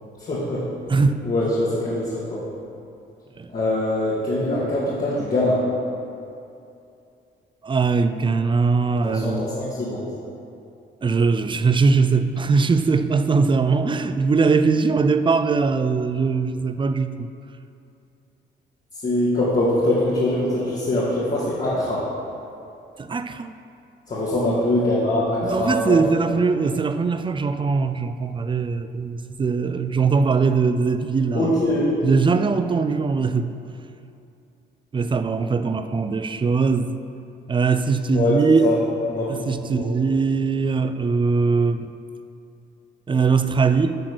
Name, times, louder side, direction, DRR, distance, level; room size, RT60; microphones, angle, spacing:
voice 1, 0.2-0.6 1.2-2.4 3.5-5.6 9.0-10.0 19.0-22.0 24.1-26.0 31.3-32.0 38.1-38.4 38.6-38.8 39.1-39.4 39.6-39.8, left 1 dB, 40° left, -8 dB, 2.0 m, -23 dB
voice 2, 7.6-9.5 11.0-17.3 23.0-23.5 25.4-31.5 32.0-33.5 34.9-37.0 37.5-38.7 39.3-41.9 43.1-44.0, right 4 dB, 25° right, 10 dB, 0.4 m, -21 dB
10.5 x 4.0 x 6.2 m, 2.6 s
cardioid pair, 90°, 20 cm